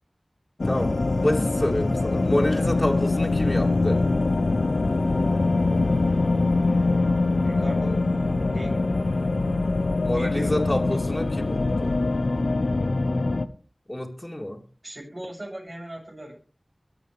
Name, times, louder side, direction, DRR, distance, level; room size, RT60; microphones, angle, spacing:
sound 1, 0.6-13.5, left 3 dB, 85° left, 0.8 m, -23 dB
voice 1, 0.6-4.0 10.0-12.0 13.9-14.6, left 1 dB, 25° left, 0 dB, 3.0 m, -28 dB
voice 2, 7.4-8.0 8.3-8.9 10.1-11.0 14.8-16.3, right 1 dB, 50° right, -1 dB, 7.8 m, -37 dB
23.0 x 8.5 x 3.4 m, 0.37 s
wide cardioid pair, 40°, 0 cm